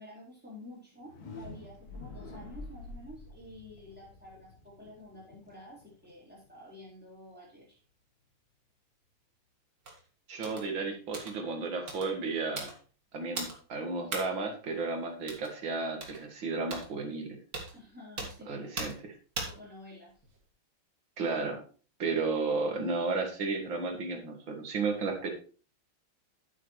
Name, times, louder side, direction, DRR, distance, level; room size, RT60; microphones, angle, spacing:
voice 1, 0.0-7.8 17.7-18.8 19.4-20.1, left 1 dB, 5° right, -5 dB, 4.0 m, -50 dB
sound 1, 0.9-6.8, left 2 dB, 50° left, 1.8 m, -48 dB
sound 2, 9.9-10.0 10.4-10.7 11.1-11.4 11.9-12.1 12.6-12.8 13.4-13.6 14.1-14.3 15.3-15.5 16.0-16.2 16.7-16.9 17.5-17.7 18.2-18.4 18.8-19.0 19.4-19.6 20.1-20.4, right 3 dB, 45° right, 2.3 m, -38 dB
voice 2, 10.3-12.7 13.1-17.4 18.5-19.1 21.2-21.6 22.0-25.3, right 4 dB, 60° right, 4 dB, 2.4 m, -33 dB
9.5 x 8.3 x 3.2 m, 0.38 s
omnidirectional pair, 2.4 m